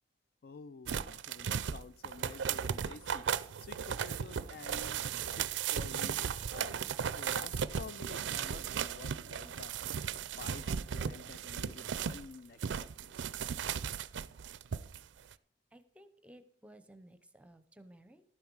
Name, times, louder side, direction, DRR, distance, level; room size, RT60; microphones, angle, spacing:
voice 1, 0.4-6.8 7.2-13.2, left 5 dB, 50° left, 15 dB, 0.3 m, -50 dB
sound 1, 0.9-12.3 12.6-15.0 15.3-15.4, right 7 dB, 70° right, 0.4 m, -36 dB
voice 2, 15.7-18.2, right 1 dB, 5° right, 10 dB, 0.7 m, -57 dB
12.0 x 9.3 x 4.7 m, 0.63 s
head